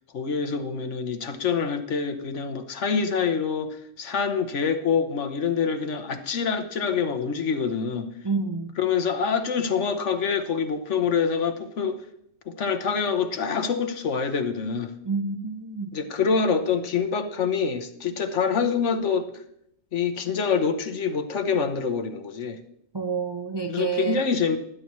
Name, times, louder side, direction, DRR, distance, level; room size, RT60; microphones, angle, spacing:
voice 1, 0.1-8.1 8.8-12.0 12.5-14.9 15.9-19.3 19.9-22.6 23.7-24.6, left 6 dB, 65° left, 7 dB, 1.3 m, -26 dB
voice 2, 8.2-8.7 15.0-15.9 22.9-24.2, right 5 dB, 30° right, 6 dB, 0.5 m, -28 dB
20.0 x 10.0 x 3.1 m, 0.74 s
omnidirectional pair, 1.4 m